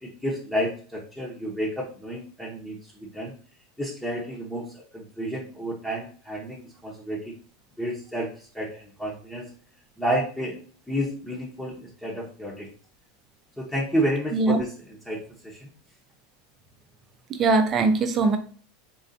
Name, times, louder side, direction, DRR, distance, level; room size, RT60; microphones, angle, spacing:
voice 1, 0.0-3.3 3.8-7.3 7.8-9.5 10.0-10.6 10.9-12.7 13.6-15.7, equal, 5° left, -3 dB, 0.9 m, -31 dB
voice 2, 17.4-18.4, right 3 dB, 35° right, 8 dB, 0.7 m, -21 dB
3.9 x 3.2 x 2.7 m, 0.42 s
hypercardioid pair, 90°, 0 cm